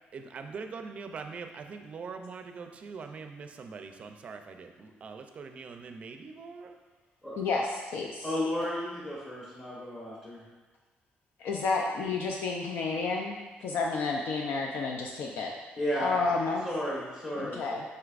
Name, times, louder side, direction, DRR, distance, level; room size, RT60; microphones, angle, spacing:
voice 1, 0.1-6.8, right 5 dB, 35° right, 6 dB, 0.5 m, -42 dB
voice 2, 7.4-8.2 11.4-15.5 15.9-16.7 17.4-17.8, left 4 dB, 75° left, 0 dB, 0.5 m, -31 dB
voice 3, 8.2-10.4 15.8-16.2 16.6-17.6, left 1 dB, 20° left, -8 dB, 1.2 m, -33 dB
7.8 x 5.7 x 2.5 m, 1.2 s
cardioid pair, 180°, 4 cm